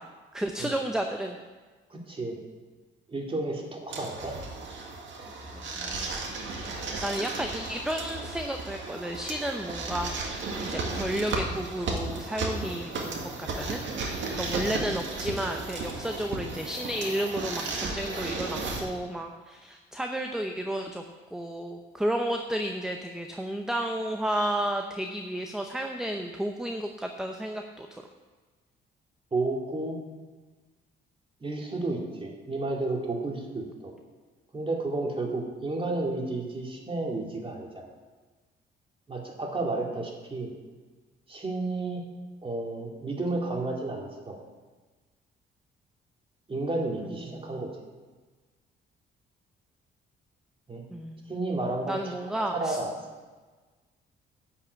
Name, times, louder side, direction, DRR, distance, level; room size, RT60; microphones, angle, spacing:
voice 1, 0.0-1.4 5.5-6.1 7.0-13.8 14.3-21.0 21.3-27.9 47.0-47.7 50.9-51.3 51.9-52.8, right 1 dB, 5° right, 4 dB, 0.7 m, -32 dB
voice 2, 1.9-2.4 3.1-4.3 5.2-5.3 29.3-30.0 31.4-33.9 34.5-37.8 39.1-40.5 41.3-42.0 42.4-44.4 46.5-47.7 50.7-50.8 51.3-52.9, right 2 dB, 25° right, 0 dB, 2.5 m, -32 dB
sound 1, 3.9-18.8, right 3 dB, 70° right, 1.9 m, -34 dB
9.9 x 5.9 x 8.2 m, 1.3 s
cardioid pair, 90°, 20 cm